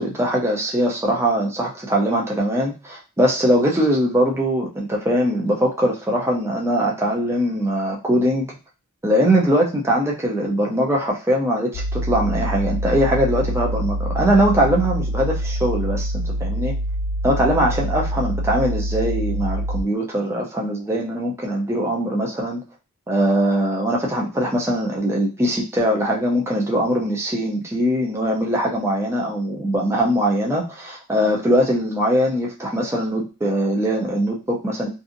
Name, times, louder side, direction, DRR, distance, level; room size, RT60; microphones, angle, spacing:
voice 1, 0.0-8.5 9.0-16.7 17.2-22.6 23.1-34.9, equal, 10° right, -2 dB, 0.4 m, -21 dB
sound 1, 11.7-19.8, right 1 dB, 70° left, 0.4 m, -25 dB
2.6 x 2.5 x 2.5 m, 0.31 s
head